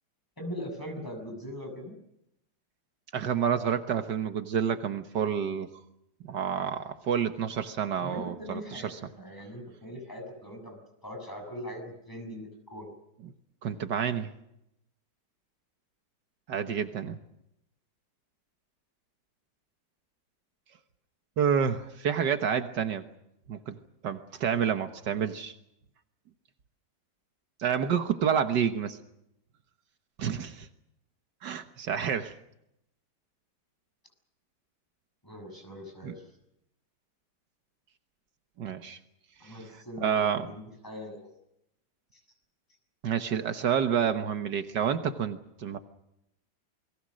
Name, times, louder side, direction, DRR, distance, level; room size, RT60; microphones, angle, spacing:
voice 1, 0.4-1.9 8.0-10.8 11.0-12.9 35.2-36.3 39.4-41.3 42.1-42.2, equal, 10° left, 3 dB, 6.9 m, -41 dB
voice 2, 3.1-5.7 6.2-9.0 13.2-13.3 13.6-14.3 16.5-17.2 21.4-23.0 23.5-23.8 24.0-25.5 27.6-29.0 30.2-30.7 31.4-32.3 36.0-36.1 38.6-39.0 39.4-39.6 40.0-40.5 43.0-45.8, right 8 dB, 75° right, 8 dB, 1.8 m, -29 dB
29.0 x 22.0 x 6.4 m, 0.81 s
omnidirectional pair, 1.9 m